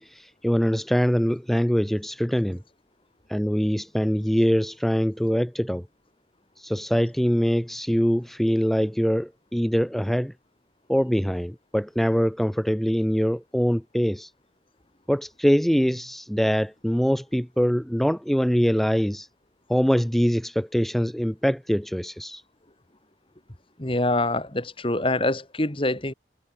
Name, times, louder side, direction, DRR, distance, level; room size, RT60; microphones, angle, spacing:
voice 1, 0.0-2.6 3.3-5.8 6.6-10.3 10.9-14.3 15.1-19.3 19.7-22.4, equal, ahead, 0.5 m, -23 dB
voice 2, 23.8-26.1, left 2 dB, 30° left, 2.3 m, -25 dB
head